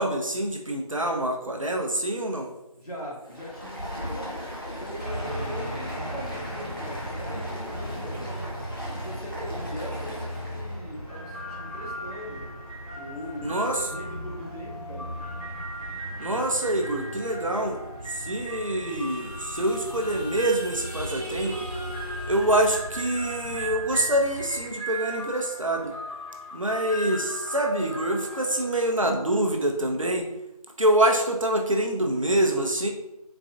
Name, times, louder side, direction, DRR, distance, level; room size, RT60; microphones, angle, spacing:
voice 1, 0.0-2.5 13.4-13.9 16.2-17.8 18.1-21.6 22.3-25.9 26.5-30.3 30.8-32.9, right 1 dB, 55° right, 2 dB, 0.5 m, -25 dB
voice 2, 2.8-4.4 4.7-8.4 8.9-12.5 12.9-15.1, equal, 70° left, -4 dB, 1.3 m, -40 dB
Stream, 3.2-10.8, equal, 35° left, 0.8 m, -38 dB
sound 1, 5.0-24.6, equal, 30° right, 0.9 m, -38 dB
sound 2, 11.1-30.2, right 1 dB, ahead, 0.6 m, -39 dB
4.0 x 2.2 x 2.6 m, 0.90 s
figure-of-eight pair, 175°, 20 cm